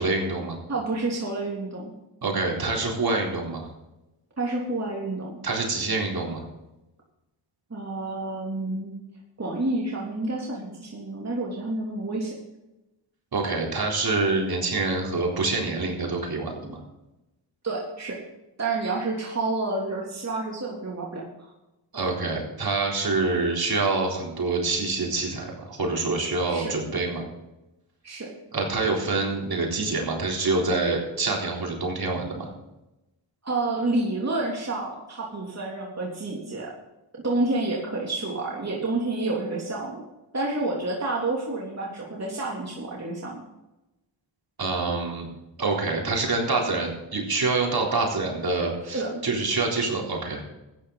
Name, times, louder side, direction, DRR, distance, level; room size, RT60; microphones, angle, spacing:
voice 1, 0.0-0.6 2.2-3.7 5.4-6.5 13.3-16.8 21.9-27.2 28.5-32.5 44.6-45.3 45.6-50.4, right 3 dB, 50° right, -1 dB, 3.9 m, -26 dB
voice 2, 0.7-1.9 4.4-5.3 7.7-9.0 9.4-12.3 17.6-18.2 18.6-21.5 26.5-26.8 28.0-28.3 33.4-36.7 37.2-40.0 40.3-43.4 48.9-49.2, right 2 dB, 35° right, -3 dB, 3.1 m, -29 dB
13.5 x 9.9 x 4.0 m, 0.95 s
cardioid pair, 75°, 46 cm